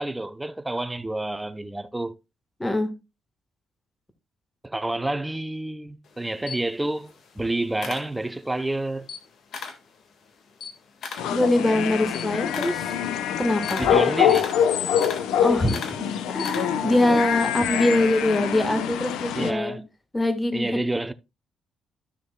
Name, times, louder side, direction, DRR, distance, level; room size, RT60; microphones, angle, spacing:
voice 1, 0.0-2.1 4.6-9.1 13.8-14.5 19.3-19.8 20.5-21.1, right 2 dB, 10° right, 0.7 m, -29 dB
voice 2, 2.6-2.9 11.2-13.0 13.4-13.8 15.4-15.9 16.3-19.8 20.1-20.8, left 1 dB, 15° left, 1.4 m, -23 dB
Camera, 6.1-8.6 9.0-9.9 10.3-17.0, left 5 dB, 60° left, 1.7 m, -38 dB
sound 1, 11.2-19.5, left 9 dB, 90° left, 0.8 m, -25 dB
12.5 x 6.3 x 2.2 m
cardioid pair, 90°, 0 cm